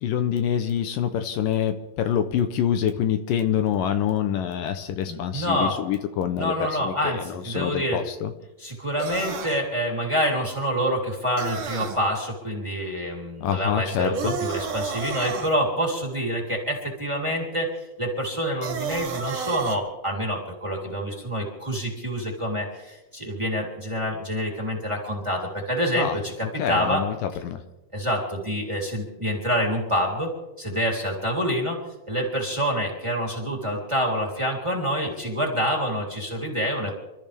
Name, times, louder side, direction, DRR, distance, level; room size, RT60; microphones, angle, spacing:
voice 1, 0.0-8.3 13.4-14.4 25.9-26.2 26.6-27.6, left 9 dB, 75° left, 8 dB, 2.4 m, -26 dB
voice 2, 5.0-5.8 6.4-8.0 8.6-27.0 27.9-30.3 30.6-31.8 32.1-36.9, equal, 10° right, -1 dB, 2.9 m, -27 dB
sound 1, 9.0-9.6 11.4-12.0 14.1-15.5 18.6-19.8, right 5 dB, 65° right, 3.1 m, -31 dB
28.0 x 14.0 x 3.5 m, 1.0 s
omnidirectional pair, 4.1 m